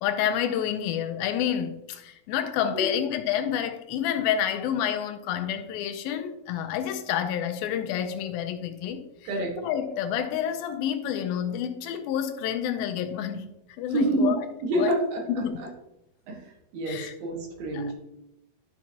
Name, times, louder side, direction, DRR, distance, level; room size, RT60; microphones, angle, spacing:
voice 1, 0.0-9.3 9.6-13.5 13.8-14.5 14.7-14.9 15.3-15.7 16.9-17.1 17.7-17.9, left 9 dB, 80° left, 2.4 m, -29 dB
voice 2, 13.9-14.3 14.6-15.2 16.3-17.9, right 1 dB, 75° right, 3.4 m, -27 dB
12.0 x 5.9 x 2.8 m
omnidirectional pair, 4.3 m